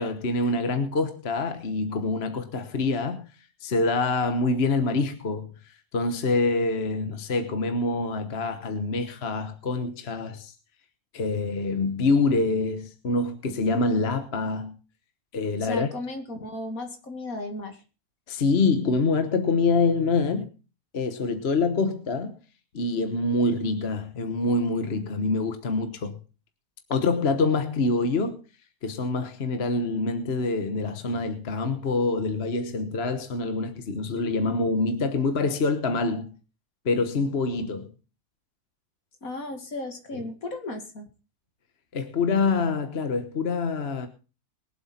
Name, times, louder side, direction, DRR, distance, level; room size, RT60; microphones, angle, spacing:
voice 1, 0.0-3.3 3.6-10.5 11.1-14.8 15.3-15.9 18.3-20.5 20.9-22.4 22.7-26.2 26.9-28.4 28.8-36.3 36.8-37.9 40.1-40.2 41.9-44.1, left 3 dB, 45° left, 1.3 m, -26 dB
voice 2, 15.6-17.8 39.2-41.1, left 2 dB, 65° left, 2.7 m, -35 dB
22.0 x 7.9 x 4.3 m
omnidirectional pair, 1.6 m